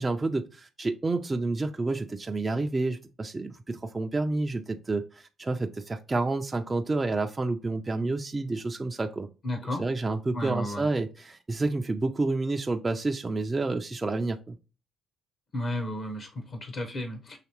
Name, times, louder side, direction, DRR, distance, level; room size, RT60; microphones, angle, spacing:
voice 1, 0.0-9.3 9.8-14.6, right 3 dB, 25° right, 0.5 m, -29 dB
voice 2, 9.4-9.8 10.3-10.9 15.5-17.4, left 1 dB, 55° left, 0.9 m, -33 dB
5.8 x 3.1 x 3.0 m
supercardioid pair, 65°, 0 cm